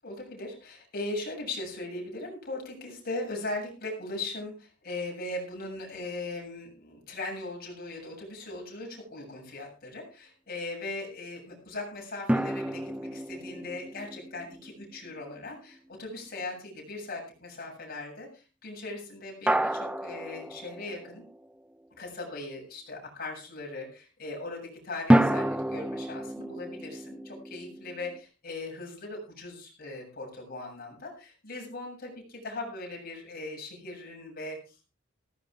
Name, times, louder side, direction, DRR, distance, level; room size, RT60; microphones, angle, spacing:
voice 1, 0.0-21.3 21.9-35.0, left 2 dB, 50° left, -1 dB, 7.8 m, -39 dB
sound 1, 12.3-15.6 19.5-21.5 25.1-28.2, right 1 dB, 5° right, 0.6 m, -29 dB
16.5 x 14.5 x 3.7 m, 0.34 s
head